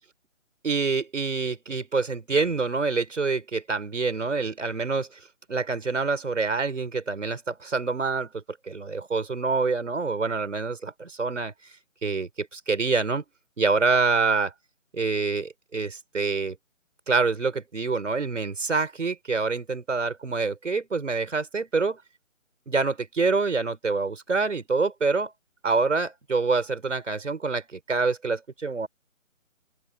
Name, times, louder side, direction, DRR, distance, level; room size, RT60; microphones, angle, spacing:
voice 1, 0.6-5.2 5.5-11.5 12.0-13.2 13.6-14.5 14.9-16.6 17.1-22.0 22.7-25.3 25.6-28.9, right 4 dB, 65° right, 5.8 m, -26 dB
open air
hypercardioid pair, 175°, 40 cm